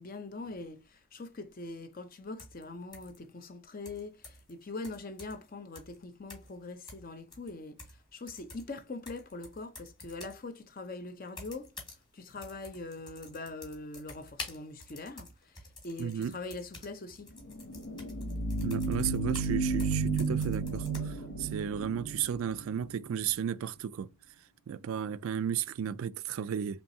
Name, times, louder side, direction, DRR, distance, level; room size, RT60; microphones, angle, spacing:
voice 1, 0.0-11.7 12.1-17.3, left 3 dB, 40° left, 0.6 m, -43 dB
sound 1, 2.4-2.6 2.9-3.2 3.9-4.5 4.8-5.5 5.8-6.0 6.3-6.6 6.9-8.0 8.3-10.4 11.3-12.0 12.3-19.5 19.8-21.0, left 2 dB, 20° left, 1.7 m, -49 dB
voice 2, 16.0-16.3 18.6-24.1 24.7-26.8, right 8 dB, 70° right, 0.3 m, -34 dB
sound 2, 17.4-22.9, right 3 dB, 80° left, 1.0 m, -32 dB
4.4 x 3.2 x 2.7 m
head